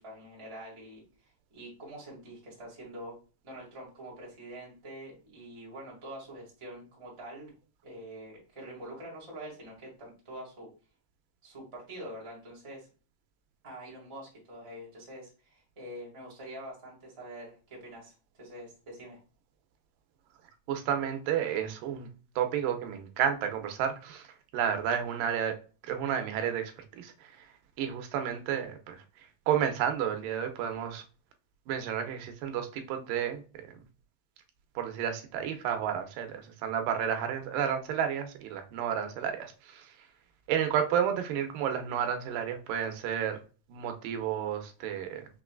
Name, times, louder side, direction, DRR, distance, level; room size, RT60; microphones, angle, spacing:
voice 1, 0.0-3.1 3.4-7.5 7.8-10.7 11.4-12.9 13.6-19.2, right 1 dB, 15° right, -4 dB, 1.0 m, -45 dB
voice 2, 20.7-22.1 22.4-24.3 24.5-25.5 25.8-27.3 27.8-29.0 29.5-31.0 31.7-33.4 34.8-39.9 40.5-43.4 43.7-45.3, right 8 dB, 90° right, 6 dB, 2.4 m, -31 dB
5.8 x 3.1 x 2.3 m, 0.35 s
omnidirectional pair, 3.8 m